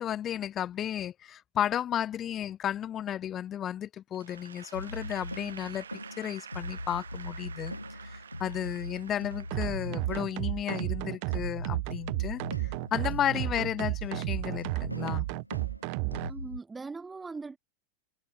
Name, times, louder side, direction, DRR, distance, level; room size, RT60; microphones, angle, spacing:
voice 1, 0.0-5.9 6.2-15.3, left 10 dB, 30° left, 2.3 m, -33 dB
Applause / Crowd, 4.1-10.5, right 7 dB, 70° right, 3.9 m, -49 dB
sound 1, 4.7-16.6, left 1 dB, 90° left, 7.1 m, -41 dB
sound 2, 9.5-16.3, right 40 dB or more, 45° right, 0.6 m, -33 dB
voice 2, 16.3-17.6, right 4 dB, 10° right, 1.4 m, -40 dB
figure-of-eight pair, 90°, 0 cm